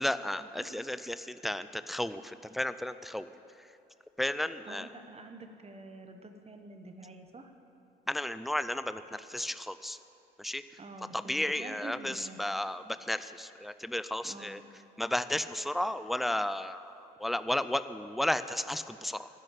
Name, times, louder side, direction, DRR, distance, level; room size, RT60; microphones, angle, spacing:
voice 1, 0.0-3.3 4.2-4.9 8.1-10.0 10.4-10.6 11.1-14.6 15.0-19.3, left 1 dB, ahead, 13 dB, 0.3 m, -33 dB
voice 2, 4.6-7.5 10.8-12.4 14.2-14.6, right 2 dB, 30° right, 6 dB, 1.1 m, -47 dB
12.0 x 6.3 x 9.2 m, 2.7 s
cardioid pair, 90°, 20 cm